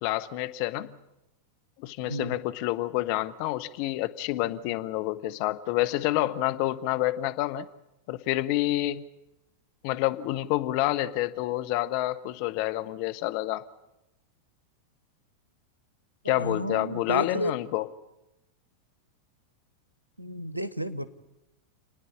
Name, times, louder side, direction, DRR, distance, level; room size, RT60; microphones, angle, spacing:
voice 1, 0.0-1.0 1.8-7.7 8.1-9.0 9.8-13.6 16.2-17.9, left 16 dB, 45° left, 9 dB, 0.9 m, -28 dB
voice 2, 2.0-2.3 16.2-17.6 20.2-21.1, right 1 dB, 90° right, 14 dB, 0.9 m, -32 dB
29.0 x 9.8 x 9.8 m, 0.92 s
figure-of-eight pair, 90°, 0 cm